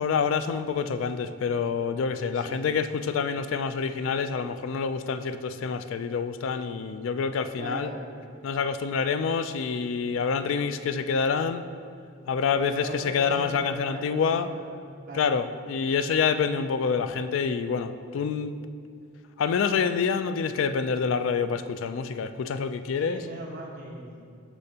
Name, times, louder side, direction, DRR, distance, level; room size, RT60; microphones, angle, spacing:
voice 1, 0.0-7.9 8.4-11.6 12.3-14.5 15.1-18.6 19.4-23.2, left 6 dB, 75° left, 11 dB, 0.3 m, -27 dB
voice 2, 2.3-2.7 7.6-8.0 12.5-14.8 15.0-15.4 23.0-24.3, right 1 dB, 40° right, -4 dB, 1.3 m, -39 dB
13.0 x 4.4 x 2.8 m, 2.4 s
head